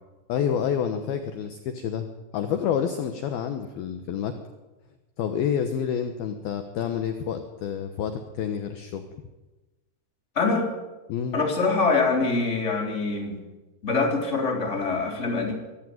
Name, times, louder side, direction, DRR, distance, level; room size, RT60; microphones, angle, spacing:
voice 1, 0.3-2.1 2.3-4.4 5.2-9.0 11.1-11.4, left 8 dB, 70° left, 7 dB, 2.6 m, -28 dB
voice 2, 10.3-10.7 11.3-13.4 13.8-15.5, left 3 dB, 15° left, 2 dB, 3.4 m, -24 dB
24.0 x 14.5 x 9.5 m, 1.1 s
omnidirectional pair, 5.4 m